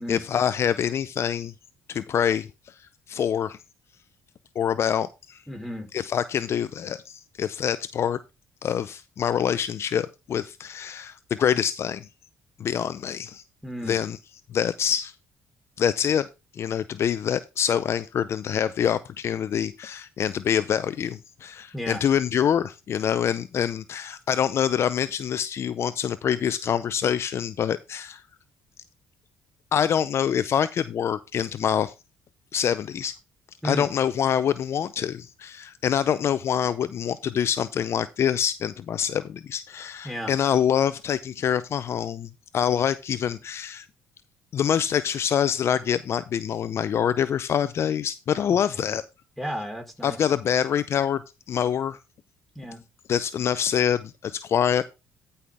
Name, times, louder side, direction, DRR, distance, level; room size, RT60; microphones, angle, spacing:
voice 1, 0.0-1.5 1.9-2.7 3.1-3.6 4.6-5.4 5.9-8.2 8.6-12.1 12.6-13.4 13.9-14.2 14.5-15.1 15.8-16.3 16.5-28.2 29.7-31.9 32.5-33.2 33.6-43.9 44.5-49.0 50.0-51.2 51.5-52.0 53.1-54.9, left 8 dB, 55° left, 0.5 m, -25 dB
voice 2, 5.5-5.9 13.6-14.0 21.7-22.0 33.6-33.9 40.0-40.3 48.4-48.5 48.7-49.0 49.4-50.3 52.5-52.8, equal, ahead, 4.1 m, -33 dB
14.0 x 5.6 x 3.5 m
supercardioid pair, 65°, 5 cm